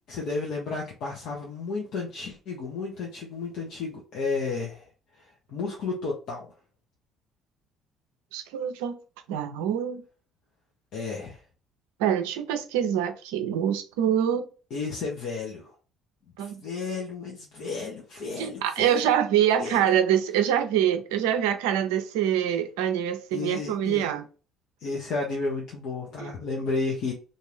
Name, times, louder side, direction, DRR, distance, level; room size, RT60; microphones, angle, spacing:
voice 1, 0.1-4.8 5.5-6.5 10.9-11.4 14.7-15.7 16.4-18.9 19.6-19.8 23.3-24.1 24.8-27.1, left 4 dB, 60° left, 0.8 m, -32 dB
voice 2, 8.3-9.0 9.3-10.0 12.0-14.5 16.4-16.6 18.4-24.2 26.2-26.3, right 10 dB, 75° right, 0.4 m, -25 dB
2.6 x 2.5 x 3.3 m
hypercardioid pair, 55°, 0 cm